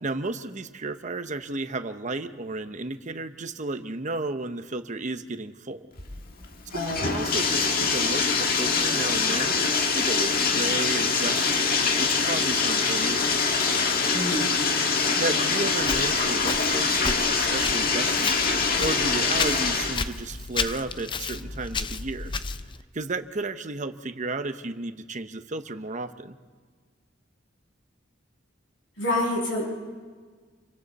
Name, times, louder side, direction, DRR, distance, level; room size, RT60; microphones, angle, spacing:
voice 1, 0.0-5.8 6.9-9.6 9.9-11.7 12.0-13.3 15.2-18.4 18.8-22.3 22.9-26.4, right 2 dB, 40° right, 9 dB, 1.0 m, -33 dB
Bathtub (filling or washing), 6.0-20.0, left 4 dB, 50° left, 1.8 m, -24 dB
voice 2, 6.7-7.1 14.1-14.6 29.0-29.6, left 1 dB, 85° left, -2 dB, 8.0 m, -27 dB
Walk footsteps, 15.8-22.8, left 4 dB, 25° left, 0.6 m, -33 dB
28.5 x 23.5 x 4.2 m, 1.6 s
head